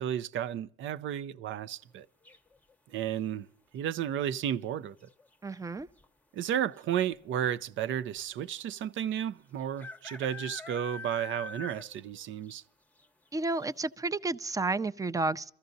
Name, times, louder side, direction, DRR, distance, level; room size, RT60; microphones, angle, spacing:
voice 1, 0.0-2.1 2.9-3.5 3.7-5.0 6.3-12.6, right 10 dB, 75° right, 0.6 m, -33 dB
sound 1, 2.2-2.7 4.5-4.9 5.2-5.3 5.5-6.0 6.8-6.9 7.1-7.2 8.8-8.9 9.8-12.1 12.4-12.5 13.0-13.1 13.6-13.7, left 3 dB, 5° left, 0.8 m, -43 dB
voice 2, 5.4-5.9 13.3-15.5, right 3 dB, 15° right, 0.5 m, -31 dB
27.5 x 14.5 x 2.6 m
cardioid pair, 90°, 20 cm